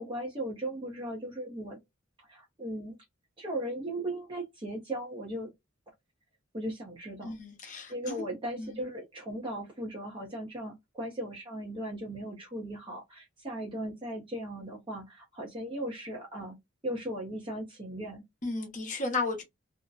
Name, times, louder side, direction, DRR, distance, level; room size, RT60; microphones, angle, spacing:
voice 1, 0.0-1.8 2.2-3.0 3.4-5.5 6.5-7.4 7.9-16.6 16.8-18.2, right 1 dB, 25° right, 0.7 m, -37 dB
voice 2, 7.2-8.3 8.6-8.8 18.4-19.4, left 3 dB, 40° left, 0.8 m, -34 dB
2.5 x 2.1 x 2.4 m
head